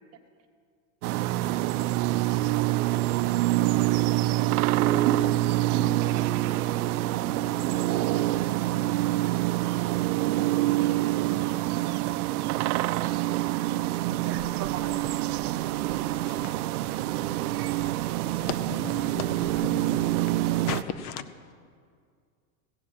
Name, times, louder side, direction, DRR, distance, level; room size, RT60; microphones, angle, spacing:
sound 1, 1.0-20.8, right 16 dB, 90° right, 0.5 m, -26 dB
voice 1, 1.4-2.8 3.2-3.4 4.1-4.3 7.9-8.0 8.2-8.4 8.8-8.9 9.2-9.3 10.6-10.7 11.1-11.2 12.2-12.3 13.1-13.4, left 8 dB, 90° left, 11 dB, 1.2 m, -58 dB
sound 2, 3.1-20.5, right 11 dB, 65° right, 1.0 m, -45 dB
voice 2, 4.8-5.1 5.7-5.8 6.1-6.2 7.1-7.3 7.6-7.7 14.0-14.9 16.4-16.6 16.9-17.7, right 11 dB, 35° right, 6 dB, 1.2 m, -37 dB
sound 3, 14.2-21.0, right 2 dB, 10° left, 4.7 m, -48 dB
voice 3, 18.5-20.1 20.7-21.2, left 9 dB, 40° left, 13 dB, 0.7 m, -36 dB
15.5 x 7.3 x 8.8 m, 2.1 s
supercardioid pair, 140°, 43 cm